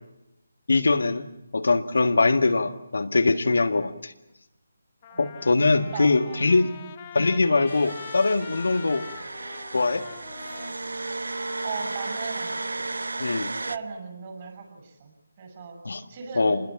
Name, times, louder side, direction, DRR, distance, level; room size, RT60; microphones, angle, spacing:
voice 1, 0.7-1.3 1.5-4.1 5.2-6.7 7.1-9.1 9.7-10.0 13.2-13.5 15.9-16.0 16.4-16.6, left 3 dB, 75° left, 6 dB, 1.9 m, -22 dB
Trumpet, 4.3-4.4 5.0-13.0, left 9 dB, 30° left, 1.8 m, -45 dB
voice 2, 5.1-5.5 5.9-6.4 6.7-6.9 11.6-12.6 13.3-15.8 16.1-16.6, right 5 dB, 35° right, 4 dB, 7.2 m, -38 dB
sound 1, 7.7-13.8, right 2 dB, 80° right, 0.8 m, -34 dB
26.5 x 21.0 x 7.3 m, 0.88 s
figure-of-eight pair, 155°, 0 cm